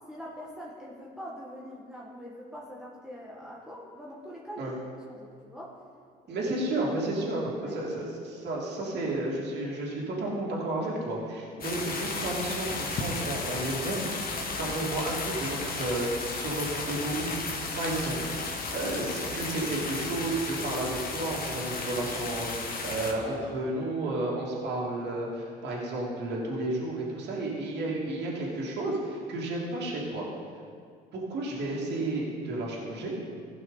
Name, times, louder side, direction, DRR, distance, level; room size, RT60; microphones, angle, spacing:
voice 1, 0.1-4.7 5.1-5.8 6.2-6.5 7.6-7.8, equal, 5° right, -6 dB, 1.8 m, -43 dB
voice 2, 6.3-14.1 14.5-30.3 31.1-33.1, right 2 dB, 55° right, -4 dB, 2.8 m, -32 dB
sound 1, 11.6-23.1, left 3 dB, 45° left, 1.6 m, -34 dB
16.0 x 5.8 x 4.1 m, 2.2 s
hypercardioid pair, 65°, 21 cm